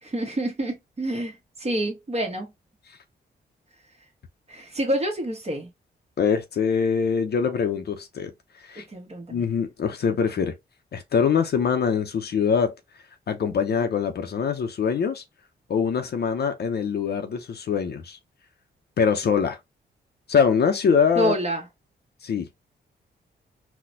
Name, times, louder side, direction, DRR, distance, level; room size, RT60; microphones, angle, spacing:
voice 1, 0.0-2.5 4.5-5.7 8.8-9.4 21.2-21.6, right 1 dB, 35° right, 1.2 m, -28 dB
voice 2, 6.2-8.3 8.6-8.8 9.3-10.6 10.9-12.7 13.3-15.2 15.7-18.2 19.0-19.6 20.3-21.3 22.2-22.5, left 6 dB, 60° left, 0.6 m, -23 dB
4.0 x 2.2 x 2.7 m
cardioid pair, 75°, 19 cm